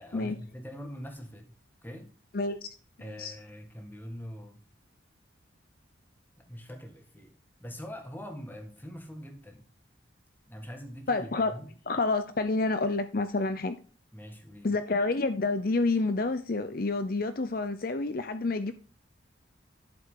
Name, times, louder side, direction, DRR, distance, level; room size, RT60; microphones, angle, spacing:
voice 1, 0.0-1.6 1.8-2.1 3.0-4.6 6.4-7.3 7.6-9.7 10.5-11.7 14.1-14.8, equal, 10° left, 1.8 m, -43 dB
voice 2, 2.3-2.7 3.2-3.3 11.1-11.6 11.9-13.8 14.6-18.7, left 3 dB, 50° left, 0.6 m, -28 dB
11.5 x 7.5 x 3.8 m
head